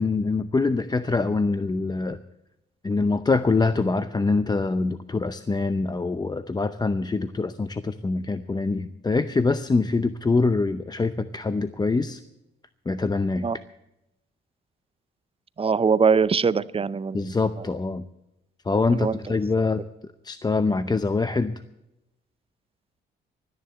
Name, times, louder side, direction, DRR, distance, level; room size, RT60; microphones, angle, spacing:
voice 1, 0.0-2.2 2.8-12.2 12.9-13.4 17.1-18.0 18.7-19.8 20.2-21.6, left 3 dB, 20° left, 12 dB, 0.6 m, -24 dB
voice 2, 15.6-17.6 18.9-19.3, right 5 dB, 30° right, 17 dB, 0.6 m, -23 dB
13.5 x 10.0 x 7.9 m, 0.90 s
cardioid pair, 90°, 20 cm